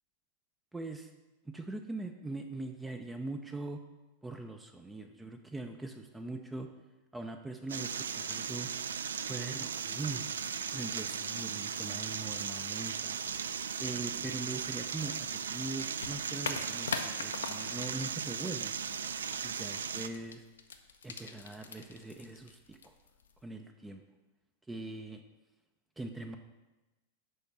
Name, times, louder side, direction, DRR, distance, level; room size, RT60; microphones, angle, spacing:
voice 1, 0.7-1.1 1.5-3.8 4.2-6.7 7.1-8.7 9.3-10.2 10.7-13.2 13.8-18.7 19.4-20.4 21.0-22.9 23.4-24.0 24.7-25.2 26.0-26.4, right 2 dB, 10° right, 5 dB, 0.5 m, -41 dB
sound 1, 7.7-20.1, right 7 dB, 70° right, 0.3 m, -37 dB
sound 2, 13.2-23.4, left 5 dB, 70° left, 0.6 m, -44 dB
6.4 x 5.2 x 5.9 m, 1.1 s
figure-of-eight pair, 90°, 0 cm